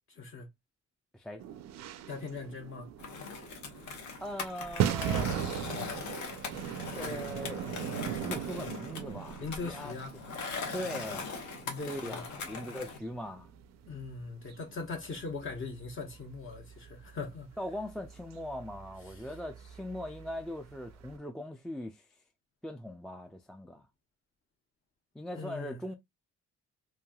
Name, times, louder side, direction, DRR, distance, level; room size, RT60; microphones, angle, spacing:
voice 1, 0.1-0.5 2.1-2.9 9.4-10.1 11.6-12.2 13.9-17.5 19.1-19.3 25.3-25.8, left 4 dB, 45° left, 0.8 m, -40 dB
sound 1, 1.4-21.2, right 10 dB, 60° right, 0.4 m, -40 dB
Skateboard, 3.0-13.0, left 5 dB, 70° left, 0.9 m, -41 dB
voice 2, 4.2-5.3 6.9-7.6 8.2-10.3 10.7-11.4 11.9-13.5 17.6-22.1 22.6-23.9 25.1-25.9, equal, ahead, 0.3 m, -40 dB
3.1 x 2.5 x 2.3 m
cardioid pair, 90°, 30 cm